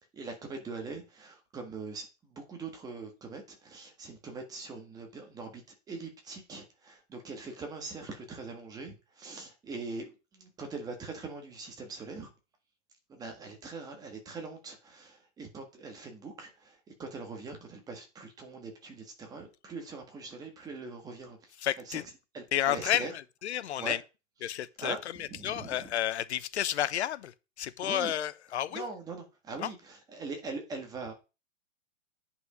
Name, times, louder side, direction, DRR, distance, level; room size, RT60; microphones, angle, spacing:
voice 1, 0.1-5.6 5.9-12.3 13.1-22.0 22.3-23.1 23.8-23.9 24.4-25.0 25.3-25.9 27.8-28.1 28.7-31.2, right 3 dB, 10° right, 1.8 m, -42 dB
voice 2, 21.6-22.0 22.5-24.0 24.4-28.9 29.6-29.7, left 11 dB, 60° left, 0.9 m, -31 dB
9.7 x 5.7 x 5.1 m
hypercardioid pair, 165°, 37 cm